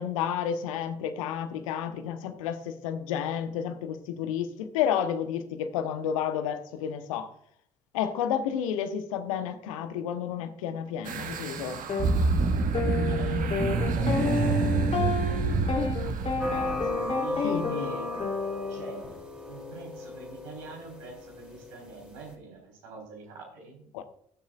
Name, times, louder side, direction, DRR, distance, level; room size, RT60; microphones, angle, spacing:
voice 1, 0.0-7.3 7.9-11.8 17.4-17.9 23.9-24.0, left 8 dB, 75° left, 9 dB, 1.0 m, -31 dB
sound 1, 11.1-17.0, right 4 dB, 50° right, 1.5 m, -27 dB
sound 2, 11.9-12.1 12.7-19.1, left 4 dB, 40° left, 3.3 m, -30 dB
voice 2, 12.8-15.0 15.3-18.1 18.7-19.1 19.5-23.8, right 4 dB, 75° right, 0 dB, 4.0 m, -45 dB
sound 3, 16.4-22.3, left 1 dB, 5° right, 3.0 m, -37 dB
19.5 x 7.3 x 2.5 m, 0.68 s
figure-of-eight pair, 55°, 17 cm